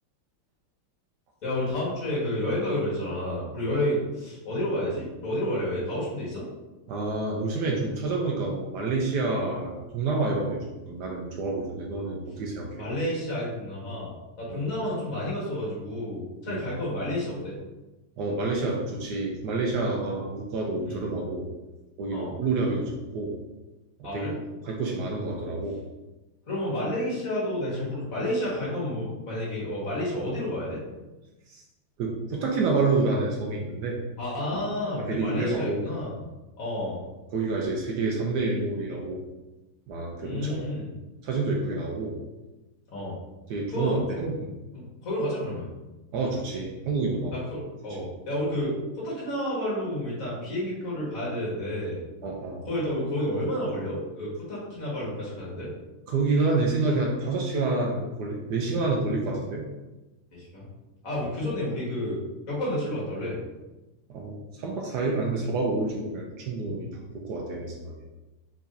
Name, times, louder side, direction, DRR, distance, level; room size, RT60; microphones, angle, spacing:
voice 1, 1.4-6.4 12.8-14.1 14.4-17.6 20.9-21.0 22.1-22.3 24.0-24.3 26.5-30.8 34.2-36.2 36.6-37.0 40.2-40.9 42.9-43.2 43.7-44.2 44.7-45.7 47.3-52.0 52.7-55.7 60.3-60.7 61.0-62.2 62.5-63.4, left 1 dB, 40° left, -6 dB, 1.9 m, -30 dB
voice 2, 6.9-12.7 14.5-14.6 16.5-16.6 18.2-21.5 22.0-23.4 24.1-24.3 24.6-25.8 31.5-31.6 32.0-34.0 35.0-35.8 37.3-39.2 39.9-40.6 41.2-42.2 43.5-44.5 46.1-47.3 48.0-48.1 52.2-52.7 56.1-59.6 61.1-61.3 64.1-66.9 67.1-68.0, right 3 dB, 70° right, -1 dB, 1.0 m, -28 dB
4.6 x 4.1 x 2.6 m, 1.1 s
omnidirectional pair, 2.4 m